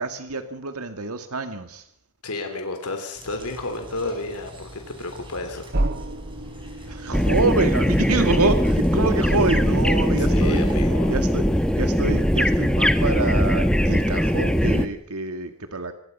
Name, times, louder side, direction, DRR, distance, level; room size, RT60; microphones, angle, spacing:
voice 1, 0.0-1.9 6.8-10.6 11.1-11.5 11.8-15.9, right 3 dB, 75° right, 7 dB, 2.0 m, -26 dB
voice 2, 2.2-5.7 6.5-7.1 10.2-11.1, left 2 dB, 85° left, 5 dB, 3.5 m, -32 dB
sound 1, 3.2-10.8, equal, 25° right, 5.2 m, -44 dB
sound 2, 5.7-10.4, right 1 dB, 50° right, 1.1 m, -33 dB
sound 3, 7.1-14.9, equal, 5° left, 1.2 m, -20 dB
26.5 x 21.0 x 5.6 m, 0.70 s
head